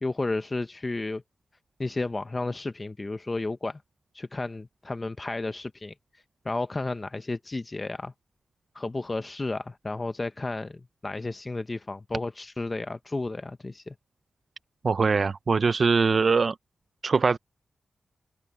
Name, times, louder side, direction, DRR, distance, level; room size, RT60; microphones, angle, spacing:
voice 1, 0.0-1.2 1.8-3.8 4.1-5.9 6.5-8.1 8.7-13.9, left 2 dB, 20° left, 0.5 m, -32 dB
voice 2, 14.8-16.5 17.0-17.4, right 4 dB, 45° right, 0.4 m, -22 dB
wide cardioid pair, 160°, 0 cm